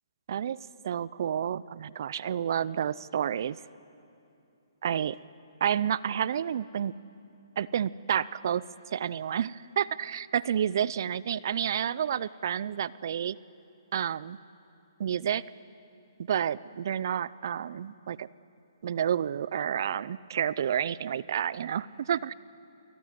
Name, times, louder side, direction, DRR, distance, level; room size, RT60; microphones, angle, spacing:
voice 1, 0.8-3.6 4.8-5.2 5.6-6.9 7.6-13.4 13.9-14.4 15.0-15.4 16.2-18.3 18.8-22.3, right 9 dB, 55° right, 20 dB, 0.5 m, -30 dB
28.5 x 19.5 x 9.3 m, 2.7 s
hypercardioid pair, 140°, 2 cm